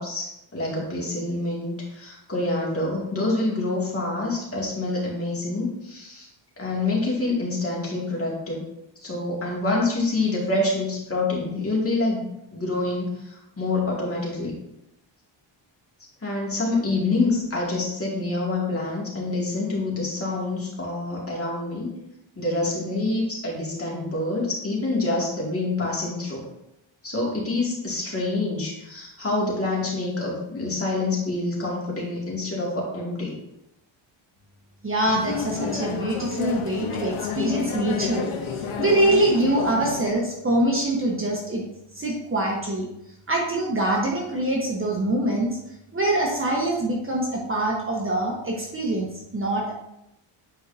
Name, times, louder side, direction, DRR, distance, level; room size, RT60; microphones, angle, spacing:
voice 1, 0.0-6.3 6.6-8.6 9.0-12.2 12.5-14.6 16.2-21.9 22.4-26.5 27.0-33.4, left 2 dB, 30° left, -4 dB, 2.3 m, -26 dB
voice 2, 34.8-38.3 38.6-41.6 41.9-42.9 43.3-45.6 45.9-49.7, right 1 dB, 25° right, -2 dB, 1.2 m, -24 dB
sound 1, 35.1-40.1, left 6 dB, 85° left, 1.0 m, -30 dB
8.9 x 4.6 x 2.7 m, 0.83 s
cardioid pair, 120°, 48 cm